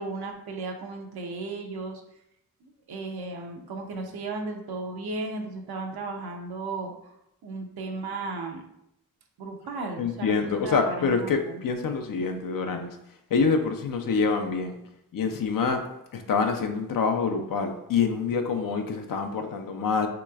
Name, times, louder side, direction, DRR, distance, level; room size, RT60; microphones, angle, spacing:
voice 1, 0.0-2.0 2.6-7.1 7.4-8.6 9.4-11.6, right 3 dB, 80° right, 2 dB, 0.6 m, -35 dB
voice 2, 10.0-13.0 13.3-14.8 15.1-15.9 16.1-20.1, left 5 dB, 65° left, 5 dB, 0.5 m, -26 dB
3.1 x 2.9 x 2.3 m, 0.79 s
cardioid pair, 50°, 37 cm